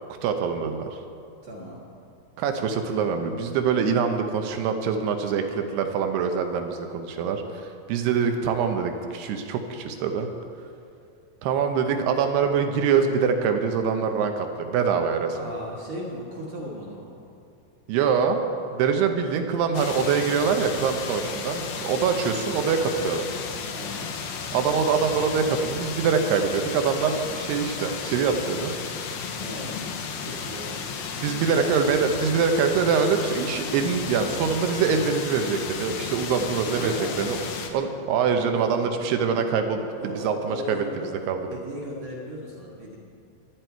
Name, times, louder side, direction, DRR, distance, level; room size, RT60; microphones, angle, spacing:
voice 1, 0.2-0.9 2.4-10.3 11.4-15.3 17.9-18.4 18.7-23.3 24.5-28.7 31.2-37.4 37.7-40.8 41.3-41.5, right 6 dB, 75° right, 5 dB, 2.7 m, -24 dB
voice 2, 1.4-1.8 15.3-17.3 23.7-24.2 29.4-29.7 30.2-30.8 31.1-31.7 36.7-37.5 40.0-41.2 41.5-43.0, equal, 50° right, -4 dB, 2.2 m, -36 dB
sound 1, 19.7-37.7, left 6 dB, 70° left, 2.3 m, -34 dB
sound 2, 29.2-40.1, left 5 dB, 90° left, 3.7 m, -45 dB
24.5 x 9.6 x 4.6 m, 2.5 s
omnidirectional pair, 5.2 m